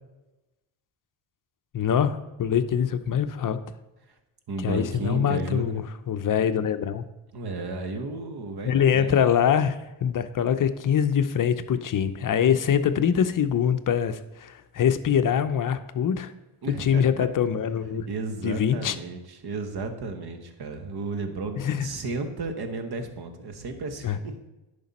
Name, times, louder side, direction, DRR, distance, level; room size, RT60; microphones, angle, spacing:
voice 1, 1.7-3.6 4.6-7.0 8.6-16.3 16.8-18.1 18.4-19.0 21.6-21.9 24.0-24.2, left 8 dB, 40° left, 11 dB, 0.6 m, -24 dB
voice 2, 4.5-5.8 7.3-9.1 16.6-17.3 18.1-24.3, right 3 dB, 50° right, 7 dB, 1.3 m, -33 dB
10.5 x 5.2 x 4.2 m, 1.0 s
cardioid pair, 85°, 50 cm